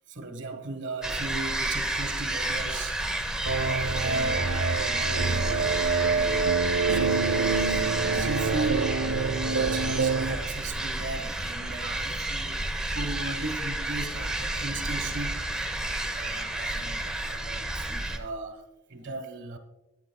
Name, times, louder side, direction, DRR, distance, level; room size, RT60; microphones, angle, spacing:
voice 1, 0.1-3.0 3.6-6.6 6.9-12.6 12.9-18.6 18.9-19.6, right 3 dB, 55° right, 1.4 m, -37 dB
sound 1, 1.0-18.2, right 1 dB, 5° right, 0.9 m, -31 dB
sound 2, 3.5-10.4, right 4 dB, 75° right, 0.7 m, -26 dB
21.5 x 9.4 x 2.2 m
head